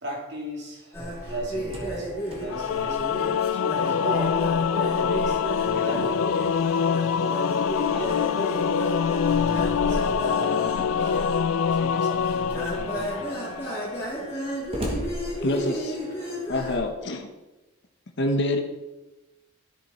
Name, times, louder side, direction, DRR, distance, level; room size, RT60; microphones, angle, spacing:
voice 1, 0.0-2.1 2.4-3.0 3.5-6.4 7.0-7.4 7.9-8.4 9.2-13.8 14.8-14.9, equal, 55° right, 0 dB, 2.5 m, -37 dB
sound 1, 0.9-16.8, equal, 15° left, 2.8 m, -33 dB
Slam, 1.6-4.1 4.4-4.5 5.0-10.6 11.5-12.0 12.6-12.7 12.9-16.0, equal, 30° right, 1.8 m, -42 dB
Singing / Musical instrument, 2.5-13.8, left 7 dB, 75° left, 0.3 m, -25 dB
voice 2, 15.4-15.9 16.5-17.3 18.2-18.6, left 1 dB, 55° left, 4 dB, 1.0 m, -26 dB
13.0 x 7.0 x 4.3 m, 1.1 s
head